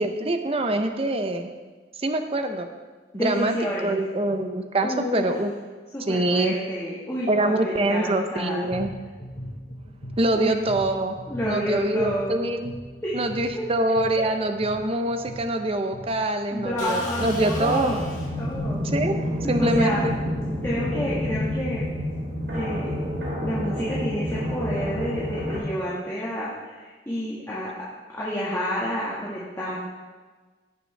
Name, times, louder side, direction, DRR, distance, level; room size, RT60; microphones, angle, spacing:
voice 1, 0.0-1.5 2.0-2.7 3.1-3.5 3.8-5.5 6.1-6.6 7.3-8.9 10.2-11.1 11.4-12.7 13.1-18.0 18.8-19.2 19.5-20.1, right 1 dB, 35° right, 7 dB, 0.6 m, -24 dB
voice 2, 3.1-4.0 4.8-5.3 5.9-8.7 10.3-10.6 11.3-12.4 13.0-13.2 13.5-13.6 16.5-18.0 18.4-18.8 19.4-20.1 20.6-21.9 22.5-22.9 23.4-27.7 28.1-29.7, equal, 15° left, -8 dB, 1.6 m, -29 dB
sound 1, 8.7-21.3, equal, 80° left, 2.4 m, -41 dB
sound 2, 16.8-18.7, left 2 dB, 45° left, 1.7 m, -36 dB
sound 3, 17.2-25.6, equal, 90° right, 3.6 m, -28 dB
15.5 x 6.7 x 3.4 m, 1.4 s
head